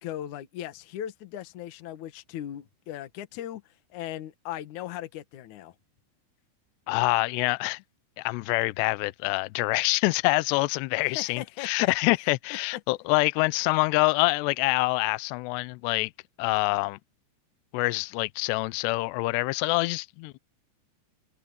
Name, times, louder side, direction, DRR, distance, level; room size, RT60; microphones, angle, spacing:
voice 1, 0.0-3.6 3.9-5.7 11.0-11.9, left 12 dB, 65° left, 1.9 m, -38 dB
voice 2, 6.9-7.8 8.2-16.1 16.4-17.0 17.7-20.4, left 24 dB, 90° left, 2.4 m, -26 dB
omnidirectional pair, 5.7 m